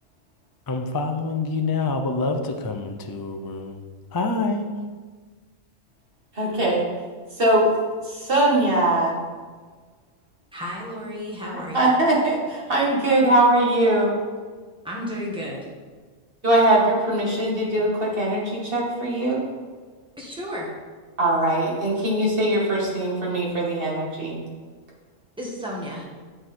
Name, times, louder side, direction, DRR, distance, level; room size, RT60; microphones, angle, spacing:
voice 1, 0.7-3.8 4.1-4.7, left 3 dB, 30° left, 5 dB, 0.4 m, -26 dB
voice 2, 6.4-6.8 7.4-7.7 8.1-9.2 11.7-14.2 16.4-19.4 21.2-24.4, right 1 dB, 45° right, -4 dB, 2.0 m, -21 dB
voice 3, 10.5-11.9 14.8-15.7 20.2-20.7 25.4-26.1, equal, 5° right, -4 dB, 1.8 m, -32 dB
7.8 x 6.7 x 4.4 m, 1.5 s
omnidirectional pair, 1.3 m